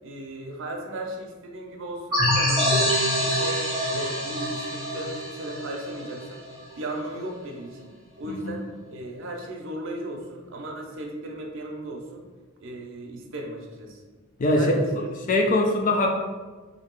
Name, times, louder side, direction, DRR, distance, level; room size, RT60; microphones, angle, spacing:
voice 1, 0.0-6.4 6.8-7.9 8.2-12.2 12.6-14.0 14.6-15.1, right 1 dB, 65° right, 1 dB, 0.6 m, -36 dB
sound 1, 2.1-6.6, equal, ahead, 1.3 m, -25 dB
voice 2, 8.3-8.6 14.4-16.1, left 1 dB, 40° left, 2 dB, 0.4 m, -23 dB
2.9 x 2.8 x 4.4 m, 1.4 s
head